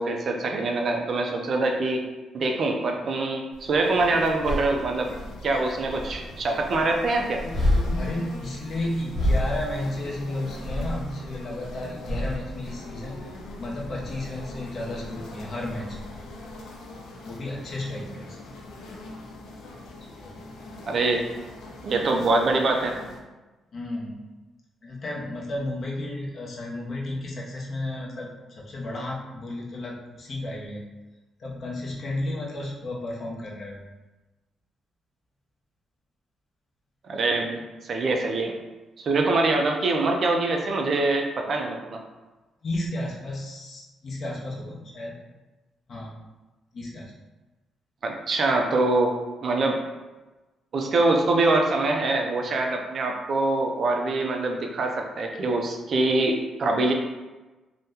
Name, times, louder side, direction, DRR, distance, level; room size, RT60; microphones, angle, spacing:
voice 1, 0.0-2.0 2.3-5.1 5.4-7.4 20.9-21.2 21.8-22.9 37.0-38.5 39.0-42.0 48.0-49.1 49.4-49.8 50.7-56.9, right 2 dB, 45° right, 2 dB, 0.4 m, -24 dB
sound 1, 3.5-16.6, left 1 dB, 15° left, 1.3 m, -31 dB
sound 2, 3.8-23.2, left 2 dB, 85° left, 0.5 m, -42 dB
voice 2, 7.9-13.3 13.6-16.0 17.2-18.4 20.2-20.3 23.7-24.2 24.8-28.3 28.6-30.8 31.4-33.8 42.6-45.1 45.9-46.1 46.7-47.1, left 1 dB, 40° left, -3 dB, 0.7 m, -33 dB
2.7 x 2.1 x 3.5 m, 1.1 s
cardioid pair, 140°, 0 cm